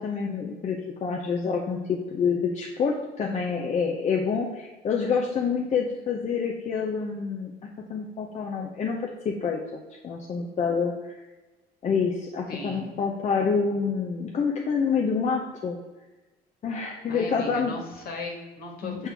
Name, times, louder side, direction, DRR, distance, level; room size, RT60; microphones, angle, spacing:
voice 1, 0.0-7.5 7.9-9.0 9.2-11.2 11.8-15.8 16.6-17.7 18.8-19.1, left 5 dB, 45° left, 0 dB, 0.8 m, -27 dB
voice 2, 12.5-12.9 17.1-19.1, left 2 dB, 65° left, 1 dB, 1.8 m, -37 dB
7.3 x 4.3 x 3.5 m, 1.1 s
cardioid pair, 110°, 17 cm